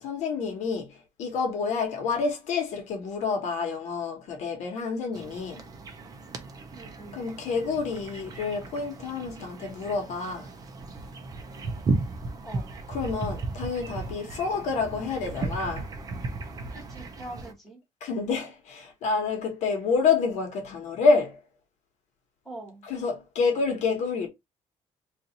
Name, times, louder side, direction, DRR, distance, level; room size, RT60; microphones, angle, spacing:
voice 1, 0.0-5.6 7.1-10.5 12.9-15.9 18.0-21.4 22.8-24.3, left 4 dB, 70° left, 1.1 m, -28 dB
sound 1, 5.1-17.5, right 3 dB, 30° right, 0.6 m, -35 dB
voice 2, 6.7-7.2 12.4-12.7 16.7-17.8 22.4-22.8, right 1 dB, ahead, 1.6 m, -43 dB
2.9 x 2.6 x 4.0 m
cardioid pair, 175°, 12 cm